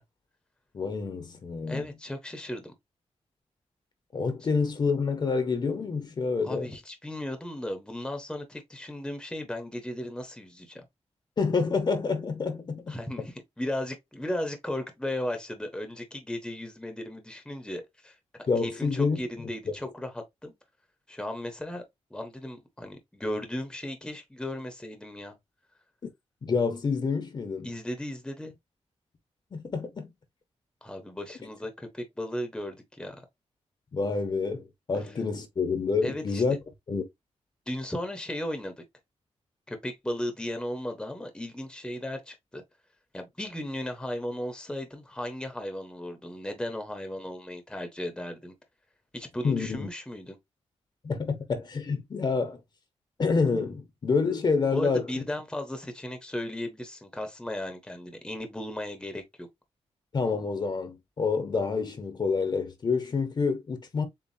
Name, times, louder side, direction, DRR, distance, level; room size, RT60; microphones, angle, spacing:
voice 1, 0.7-1.9 4.1-6.7 11.4-13.3 18.5-19.7 26.4-27.7 29.5-30.1 33.9-36.6 36.9-37.0 49.4-49.9 51.0-52.6 53.2-55.1 60.1-64.1, left 4 dB, 40° left, 0.9 m, -28 dB
voice 2, 1.7-2.7 6.4-10.9 12.9-20.5 21.1-21.8 22.1-25.4 27.6-28.6 30.8-33.2 36.0-36.4 37.7-38.8 39.7-42.6 43.1-48.5 49.1-50.4 54.7-59.5, left 1 dB, 5° left, 0.9 m, -36 dB
7.2 x 2.4 x 2.7 m
wide cardioid pair, 155°, 11 cm